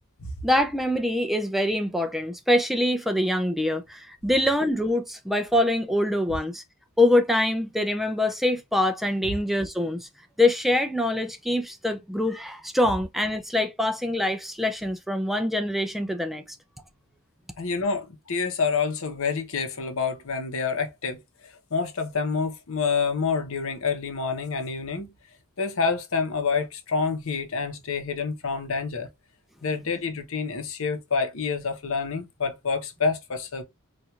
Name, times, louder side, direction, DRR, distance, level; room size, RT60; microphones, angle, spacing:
voice 1, 0.4-6.6 7.0-10.1 10.4-16.4, left 1 dB, ahead, 0.3 m, -24 dB
voice 2, 17.6-25.1 25.6-29.1 29.6-33.6, left 5 dB, 65° left, 0.9 m, -28 dB
4.4 x 2.5 x 2.3 m
head